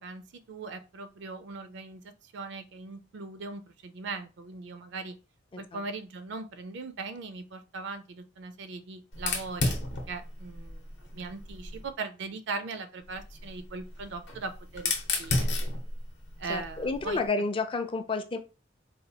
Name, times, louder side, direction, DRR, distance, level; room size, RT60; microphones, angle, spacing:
voice 1, 0.0-5.2 5.6-9.7 10.1-10.8 11.1-15.5 16.4-17.2, right 4 dB, 60° right, 0.4 m, -39 dB
Fire, 9.1-11.9 13.0-17.3, left 2 dB, 60° left, 0.8 m, -33 dB
voice 2, 16.5-18.4, left 3 dB, 25° left, 0.4 m, -30 dB
4.1 x 2.2 x 2.8 m
head